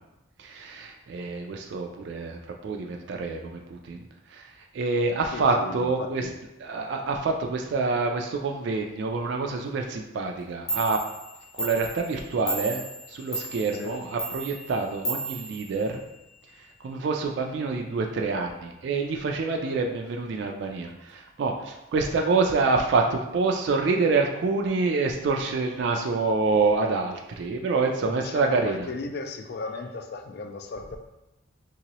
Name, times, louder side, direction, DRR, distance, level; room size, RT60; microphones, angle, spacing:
voice 1, 0.4-6.3 6.6-11.0 11.5-16.0 16.6-28.9, right 4 dB, 60° right, 2 dB, 0.3 m, -27 dB
voice 2, 5.3-6.3 13.8-14.0 28.1-31.0, left 3 dB, 55° left, 6 dB, 0.3 m, -36 dB
Clock, 10.4-10.5 10.7-16.3, right 2 dB, 80° left, 0.8 m, -35 dB
3.0 x 2.8 x 2.9 m, 0.94 s
head